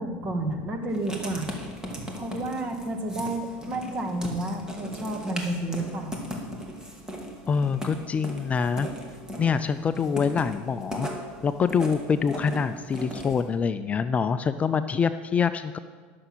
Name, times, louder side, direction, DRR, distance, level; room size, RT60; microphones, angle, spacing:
voice 1, 0.0-1.5 2.0-6.2, right 1 dB, 30° right, 4 dB, 1.7 m, -31 dB
Writing, 0.9-13.4, equal, 10° right, 1.9 m, -38 dB
voice 2, 7.5-8.9 9.4-11.1 11.4-15.8, left 6 dB, 25° left, 11 dB, 0.4 m, -25 dB
11.5 x 6.8 x 6.1 m, 1.5 s
supercardioid pair, 110°, 5 cm